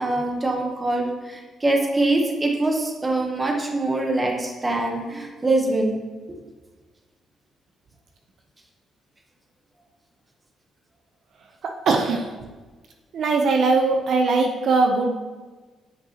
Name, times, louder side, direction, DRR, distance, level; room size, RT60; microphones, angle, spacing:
voice 1, 0.0-6.0, right 2 dB, 15° right, 1 dB, 0.9 m, -23 dB
voice 2, 11.6-12.3 13.1-15.2, right 3 dB, 55° right, 3 dB, 0.6 m, -21 dB
8.2 x 5.6 x 2.8 m, 1.3 s
cardioid pair, 150°, 0 cm